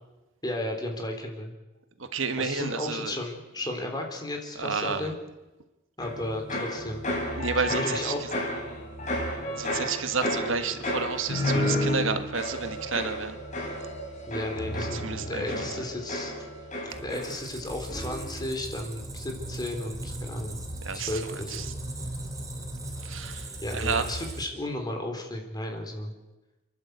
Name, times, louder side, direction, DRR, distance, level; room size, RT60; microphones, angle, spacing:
voice 1, 0.4-1.5 2.4-5.1 6.0-7.0 7.7-8.2 14.3-15.0 15.3-16.3 17.0-20.6 20.9-21.7 23.6-26.1, left 1 dB, 20° left, 3 dB, 3.6 m, -34 dB
voice 2, 2.0-3.2 4.5-5.1 7.3-8.3 9.5-13.4 14.9-15.5 20.8-21.2 21.5-21.7 23.0-24.1, right 5 dB, 85° right, 9 dB, 1.5 m, -31 dB
sound 1, 6.0-17.6 17.9-18.4, left 1 dB, 40° left, 5.2 m, -32 dB
Squeak, 16.9-24.8, right 1 dB, 20° right, 2.8 m, -38 dB
29.5 x 11.5 x 8.0 m, 1.0 s
head